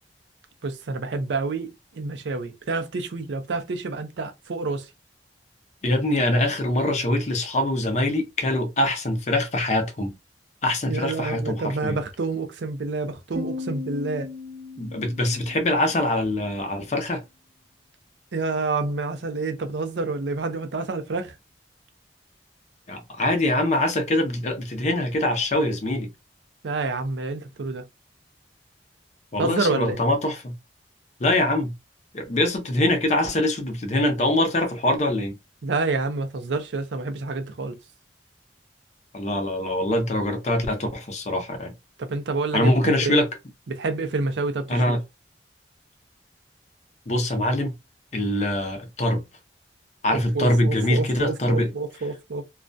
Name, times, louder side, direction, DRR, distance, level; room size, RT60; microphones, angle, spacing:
voice 1, 0.6-4.9 10.9-14.3 18.3-21.3 26.6-27.8 29.4-30.0 35.6-37.8 42.0-43.1 43.7-45.0 50.1-52.4, right 3 dB, 85° right, 0.5 m, -28 dB
voice 2, 5.8-10.1 10.6-12.0 14.8-17.2 22.9-26.1 29.3-30.5 31.2-31.7 32.1-35.3 39.1-41.7 42.5-43.3 44.7-45.0 47.1-47.7 48.1-49.2 50.0-51.7, left 1 dB, 40° left, 0.6 m, -23 dB
Piano, 13.4-16.8, left 3 dB, 35° right, 0.5 m, -37 dB
2.3 x 2.1 x 2.5 m
head